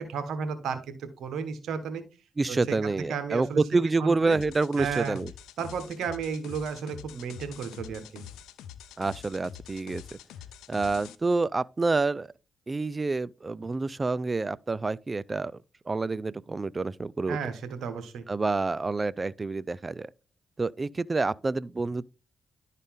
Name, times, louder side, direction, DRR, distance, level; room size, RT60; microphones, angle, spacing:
voice 1, 0.0-2.0 2.5-3.6 4.0-4.4 4.8-5.2 5.6-8.2 17.3-18.2, right 6 dB, 75° right, 1.3 m, -33 dB
voice 2, 2.4-5.3 9.0-10.2 10.7-12.3 12.7-15.5 15.9-17.4 18.3-20.1 20.6-22.0, right 3 dB, 30° right, 0.4 m, -28 dB
sound 1, 4.3-11.1, left 9 dB, 90° left, 0.5 m, -45 dB
11.5 x 4.1 x 3.7 m
supercardioid pair, 65°, 0 cm